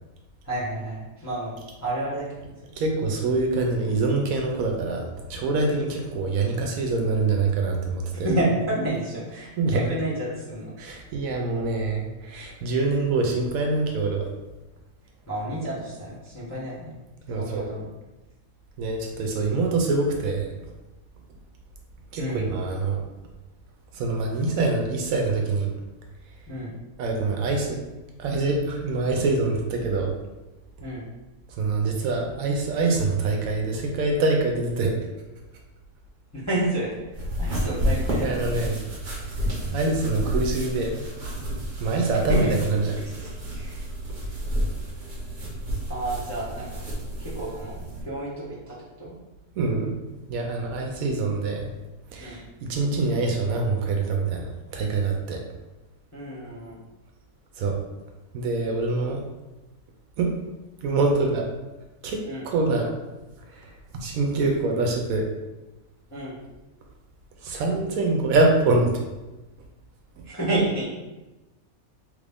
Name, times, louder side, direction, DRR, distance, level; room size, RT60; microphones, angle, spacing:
voice 1, 0.4-2.5 8.2-10.7 15.3-16.9 17.3-17.8 22.2-22.5 26.5-26.7 30.8-31.1 36.3-38.6 42.3-42.5 43.0-43.8 44.3-44.4 45.9-46.8 47.2-49.1 52.2-52.4 56.1-56.8 62.2-62.5 66.1-66.4 70.2-70.9, right 1 dB, 15° left, -9 dB, 0.6 m, -30 dB
voice 2, 2.8-8.3 9.6-9.8 10.8-14.3 17.3-17.7 18.8-20.7 22.1-23.0 23.9-25.7 27.0-27.8 28.2-30.1 31.5-34.9 38.2-38.8 39.3-41.0 41.8-42.9 49.6-49.9 50.3-51.7 52.1-55.4 57.6-57.8 58.3-59.2 60.2-60.3 60.8-61.5 62.0-63.0 63.5-65.2 67.4-68.9, right 3 dB, 75° right, 1 dB, 1.0 m, -25 dB
sound 1, 37.1-48.0, equal, 45° right, 0.8 m, -30 dB
3.2 x 2.5 x 3.4 m, 1.1 s
omnidirectional pair, 1.5 m